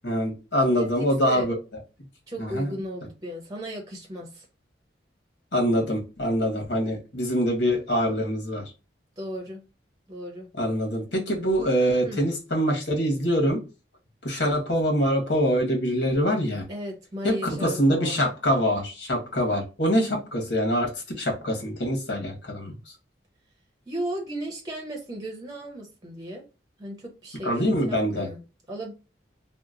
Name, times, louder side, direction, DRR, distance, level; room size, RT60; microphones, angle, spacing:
voice 1, 0.0-1.5 2.4-2.7 5.5-8.6 10.6-13.6 14.2-16.6 17.2-20.9 21.1-22.7 27.4-28.3, equal, 80° left, 1 dB, 1.3 m, -24 dB
voice 2, 2.3-4.5 9.2-9.6 10.1-10.5 12.0-12.2 16.7-18.2 23.9-26.4 26.8-28.4 28.7-28.9, right 1 dB, 20° right, 1 dB, 0.7 m, -35 dB
2.9 x 2.0 x 3.7 m, 0.30 s
head